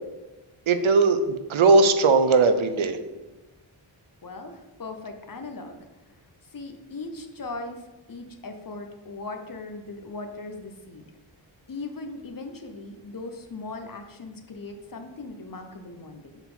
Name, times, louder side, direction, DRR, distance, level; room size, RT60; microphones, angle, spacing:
voice 1, 0.7-3.0, right 3 dB, 75° right, 9 dB, 0.7 m, -19 dB
voice 2, 4.2-5.8 6.5-7.8 8.1-11.0 11.7-16.4, left 3 dB, 40° left, 6 dB, 0.8 m, -38 dB
4.5 x 3.9 x 5.5 m, 1.1 s
cardioid pair, 55°, 50 cm